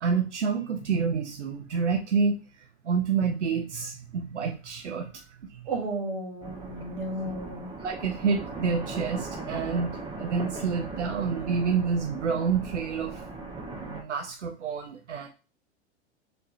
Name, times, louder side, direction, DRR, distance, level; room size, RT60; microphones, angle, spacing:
voice 1, 0.0-5.7 7.8-13.2 13.8-15.3, right 5 dB, 85° right, 4 dB, 0.6 m, -28 dB
voice 2, 5.7-7.7, right 2 dB, 55° right, 2 dB, 1.6 m, -33 dB
sound 1, 6.4-14.0, right 3 dB, 15° right, 0.9 m, -38 dB
3.9 x 3.5 x 2.8 m, 0.33 s
figure-of-eight pair, 100°, 34 cm